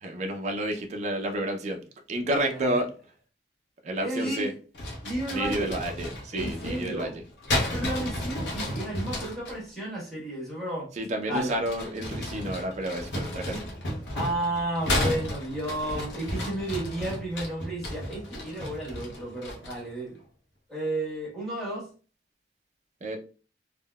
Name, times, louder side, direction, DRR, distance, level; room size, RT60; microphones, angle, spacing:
voice 1, 0.0-1.8 2.1-2.9 3.8-4.5 5.3-7.1 10.9-13.7 23.0-23.2, right 1 dB, 40° right, 3 dB, 0.4 m, -30 dB
voice 2, 2.4-2.8 4.0-4.5 5.0-5.8 6.3-7.2 7.6-10.9 11.3-11.5 13.5-13.6 14.1-20.2 20.7-21.9, right 1 dB, ahead, -6 dB, 1.3 m, -32 dB
sound 1, 4.7-9.6 11.3-19.9, left 1 dB, 70° left, 0.7 m, -33 dB
3.6 x 2.1 x 2.2 m, 0.36 s
head